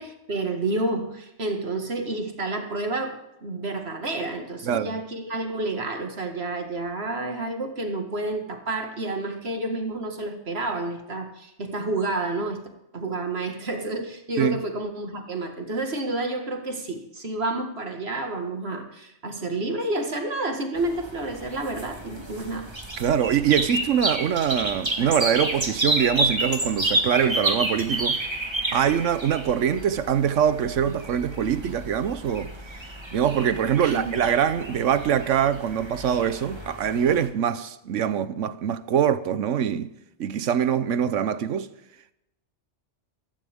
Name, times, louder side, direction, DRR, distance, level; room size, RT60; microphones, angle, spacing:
voice 1, 0.0-12.6 12.9-22.7 31.4-31.8 33.8-34.2, right 2 dB, 60° right, 2.1 m, -30 dB
voice 2, 4.6-5.0 14.4-14.6 23.0-28.2 28.7-32.5 33.1-39.9 40.2-41.7, right 8 dB, 90° right, 1.2 m, -23 dB
sound 1, 20.8-37.3, right 1 dB, 25° right, 1.6 m, -30 dB
15.5 x 13.5 x 3.6 m
omnidirectional pair, 1.2 m